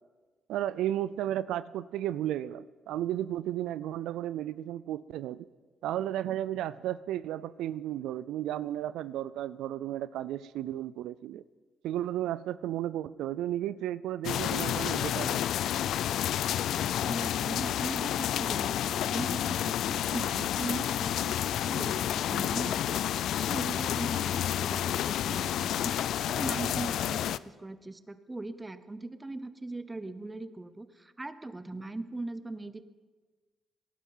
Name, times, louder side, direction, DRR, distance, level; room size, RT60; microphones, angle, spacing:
voice 1, 0.5-5.5 5.8-11.4 11.8-15.4, right 12 dB, 85° right, 16 dB, 0.3 m, -33 dB
sound 1, 14.2-27.4, left 11 dB, 75° left, 0.3 m, -30 dB
voice 2, 17.0-23.0 23.4-32.8, right 2 dB, 15° right, 13 dB, 0.9 m, -39 dB
18.5 x 11.5 x 5.5 m, 1.4 s
cardioid pair, 90°, 0 cm